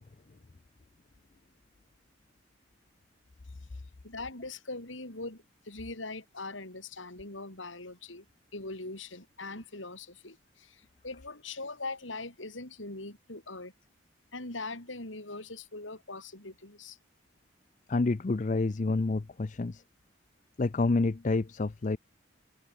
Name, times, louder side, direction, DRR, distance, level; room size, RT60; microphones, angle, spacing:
voice 1, 3.4-8.2 8.5-13.7 14.3-17.0, left 3 dB, 85° left, 6.0 m, -41 dB
voice 2, 17.9-19.8 20.6-22.0, left 3 dB, 40° left, 0.5 m, -28 dB
head